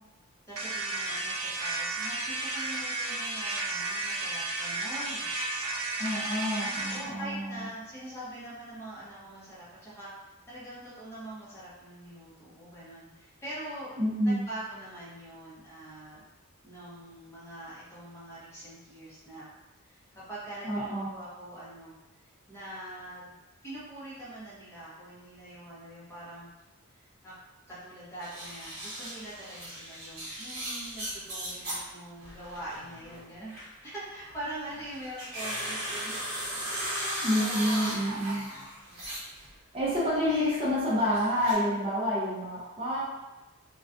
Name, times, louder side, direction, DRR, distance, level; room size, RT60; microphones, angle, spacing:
voice 1, 0.5-5.3 6.8-13.9 14.2-16.2 16.6-19.5 19.8-20.0 20.3-21.9 22.5-26.5 26.9-27.4 27.7-36.1 37.0-38.3 38.8-39.1, right 1 dB, 15° left, -9 dB, 0.7 m, -43 dB
sound 1, 0.6-7.1, right 2 dB, 75° right, 0.5 m, -33 dB
voice 2, 6.0-7.7 14.0-14.4 20.6-21.1 37.2-38.4 39.7-43.0, equal, 25° right, -8 dB, 0.5 m, -28 dB
sound 2, 28.2-31.8 32.2-33.8 34.2-39.5 39.7-41.5, right 1 dB, 45° right, 1.0 m, -37 dB
2.3 x 2.2 x 2.4 m, 1.1 s
head